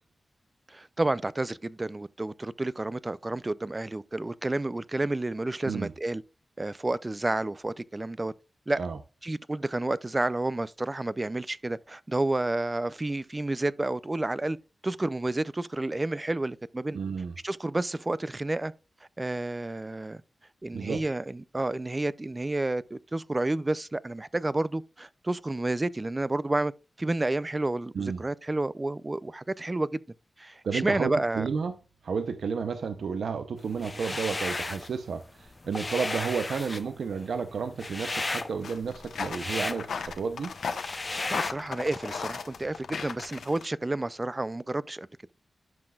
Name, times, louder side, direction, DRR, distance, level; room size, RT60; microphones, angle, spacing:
voice 1, 0.7-6.2 6.6-8.3 8.7-8.8 9.2-14.6 14.8-17.0 17.4-18.7 19.2-20.2 20.6-26.7 27.0-30.0 30.4-31.5 41.3-45.1, right 2 dB, 25° right, 0.5 m, -30 dB
voice 2, 16.9-17.3 20.7-21.0 27.9-28.2 30.6-31.7 32.0-40.5, right 5 dB, 80° right, 0.6 m, -32 dB
sound 1, 33.7-34.9 35.3-41.5, left 2 dB, 35° left, 0.7 m, -34 dB
sound 2, 38.6-43.7, left 5 dB, 85° left, 1.0 m, -36 dB
11.5 x 5.9 x 2.4 m
cardioid pair, 60°, 0 cm